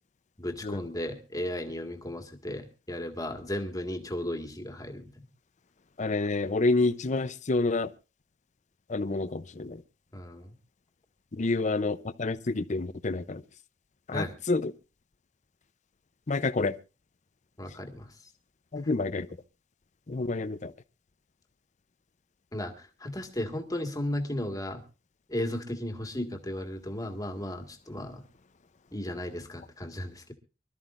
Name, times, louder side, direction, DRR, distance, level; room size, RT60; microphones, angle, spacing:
voice 1, 0.4-5.3 10.1-10.6 14.1-14.3 17.6-18.2 22.5-24.8 25.3-28.3 28.9-30.3, left 1 dB, 20° left, 1.8 m, -35 dB
voice 2, 6.0-7.9 8.9-9.8 11.3-13.4 14.1-14.7 16.3-16.7 18.7-19.3 20.1-20.7, left 3 dB, 40° left, 0.7 m, -28 dB
25.0 x 13.0 x 2.5 m
head